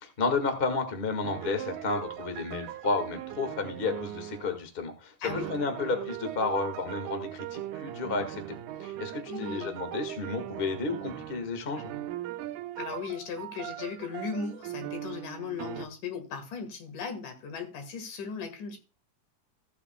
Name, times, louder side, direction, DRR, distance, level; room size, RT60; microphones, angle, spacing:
voice 1, 0.0-5.1 5.5-8.4 8.8-11.9, left 3 dB, 35° left, 0.9 m, -32 dB
sound 1, 1.2-4.6 5.3-11.5 11.8-15.9, right 13 dB, 80° right, 2.1 m, -39 dB
voice 2, 5.2-5.5 9.2-9.8 12.8-18.8, left 5 dB, 75° left, 3.2 m, -37 dB
15.5 x 8.5 x 2.2 m
omnidirectional pair, 3.7 m